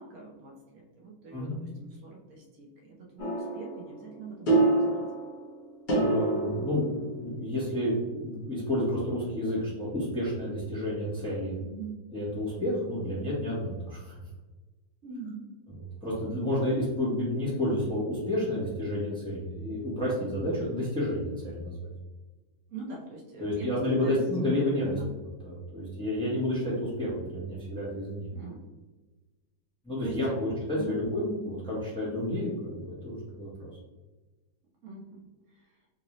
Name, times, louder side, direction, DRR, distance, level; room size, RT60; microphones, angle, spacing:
voice 1, 0.0-5.0 11.6-12.0 15.0-15.4 22.7-24.2 24.9-25.1 28.3-28.7 30.0-30.4 30.8-31.0 34.8-35.8, right 4 dB, 85° right, -1 dB, 0.6 m, -43 dB
sound 1, 3.2-7.7, right 2 dB, 70° left, 0.4 m, -28 dB
voice 2, 6.0-11.5 12.1-14.2 16.0-21.9 23.4-24.9 25.4-28.3 29.8-33.7, left 1 dB, 5° left, -7 dB, 0.7 m, -30 dB
3.8 x 2.6 x 3.0 m, 1.2 s
omnidirectional pair, 2.2 m